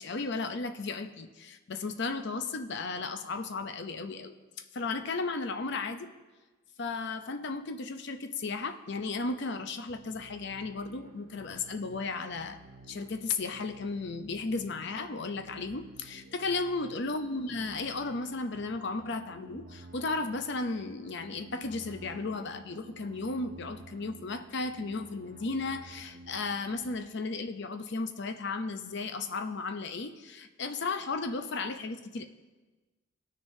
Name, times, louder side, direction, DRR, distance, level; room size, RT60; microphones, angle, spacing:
voice 1, 0.0-4.4 4.7-6.1 6.8-12.6 12.9-32.3, left 3 dB, 60° left, 7 dB, 0.6 m, -35 dB
sound 1, 9.9-27.0, right 2 dB, 50° right, 0.6 m, -52 dB
18.5 x 6.5 x 2.7 m, 1.2 s
head